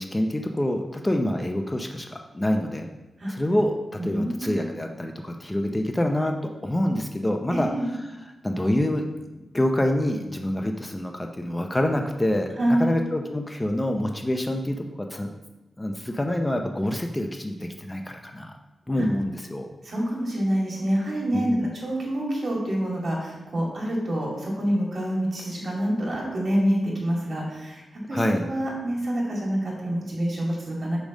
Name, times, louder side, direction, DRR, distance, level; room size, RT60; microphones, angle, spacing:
voice 1, 0.0-2.9 3.3-3.7 4.0-6.4 6.6-7.7 8.4-9.1 9.5-15.3 15.8-18.5 18.9-19.7 21.3-21.7 28.1-28.5, left 1 dB, 15° left, 4 dB, 0.6 m, -26 dB
voice 2, 4.0-4.6 7.5-7.9 12.6-12.9 19.0-19.1 19.8-31.0, equal, 55° right, -3 dB, 2.3 m, -27 dB
5.2 x 5.1 x 6.3 m, 1.1 s
wide cardioid pair, 100°, 0 cm